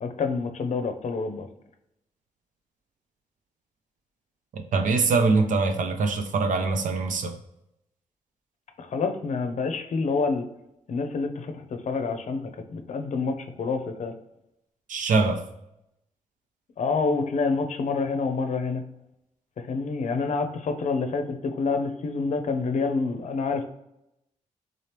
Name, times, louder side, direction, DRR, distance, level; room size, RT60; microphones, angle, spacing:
voice 1, 0.0-1.5 8.8-10.5 10.9-14.1 16.8-18.8 19.6-23.6, left 4 dB, 60° left, 6 dB, 0.6 m, -27 dB
voice 2, 4.5-7.4 14.9-15.4, right 4 dB, 75° right, 5 dB, 0.6 m, -23 dB
3.8 x 2.9 x 3.3 m, 0.84 s
cardioid pair, 70°, 13 cm